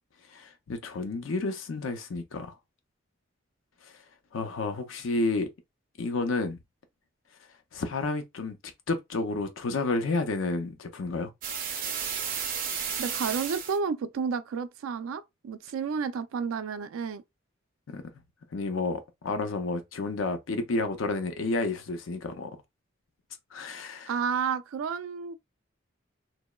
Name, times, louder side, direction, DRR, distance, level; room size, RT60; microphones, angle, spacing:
voice 1, 0.3-2.5 3.8-3.9 4.3-5.5 6.0-6.6 7.7-8.6 8.9-11.3 17.9-18.0 18.5-22.5 23.5-24.1, left 3 dB, 80° left, 0.5 m, -30 dB
sound 1, 11.4-13.8, right 7 dB, 45° right, 0.6 m, -32 dB
voice 2, 13.0-17.2 24.1-25.4, right 6 dB, 90° right, 0.3 m, -31 dB
2.9 x 2.0 x 2.2 m
head